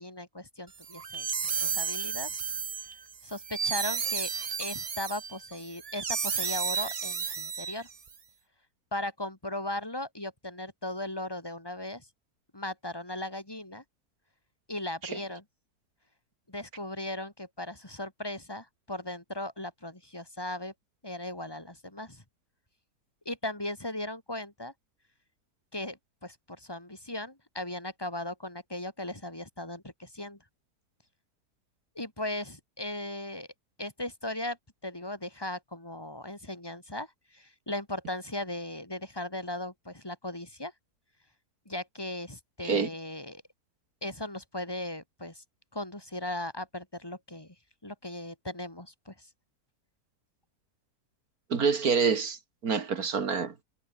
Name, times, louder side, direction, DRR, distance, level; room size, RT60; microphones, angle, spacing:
voice 1, 0.0-2.3 3.2-4.3 4.6-7.9 8.9-12.0 12.5-13.8 14.7-15.4 16.5-20.7 21.0-22.2 23.2-24.7 25.7-30.4 31.9-33.5 33.8-34.6 34.8-40.7 41.6-43.4 44.0-45.4 45.7-47.5 47.8-49.3, left 1 dB, 15° left, 3.1 m, -37 dB
sound 1, 0.8-8.1, right 6 dB, 45° right, 0.4 m, -32 dB
voice 2, 51.5-52.4 52.6-53.5, right 5 dB, 65° right, 2.4 m, -26 dB
omnidirectional pair, 1.7 m